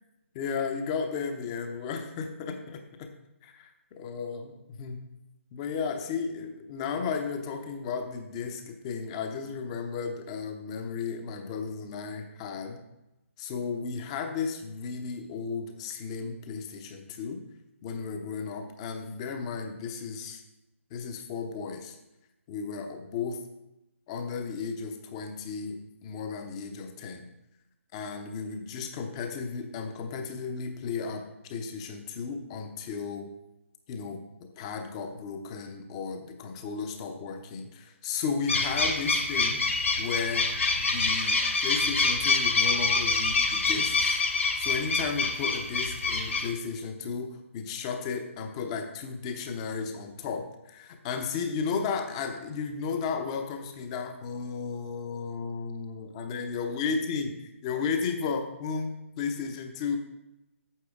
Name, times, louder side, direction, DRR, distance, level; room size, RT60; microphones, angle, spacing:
voice 1, 0.3-3.1 3.4-5.0 5.5-12.8 13.4-17.4 17.8-20.4 20.9-22.0 22.5-23.4 24.1-27.3 27.9-33.3 33.9-40.5 40.8-44.2 44.6-57.3 57.6-60.0, left 5 dB, 25° left, 6 dB, 0.8 m, -34 dB
sound 1, 38.5-46.5, left 3 dB, 60° left, 1.6 m, -26 dB
8.6 x 7.7 x 3.6 m, 0.92 s
figure-of-eight pair, 140°, 8 cm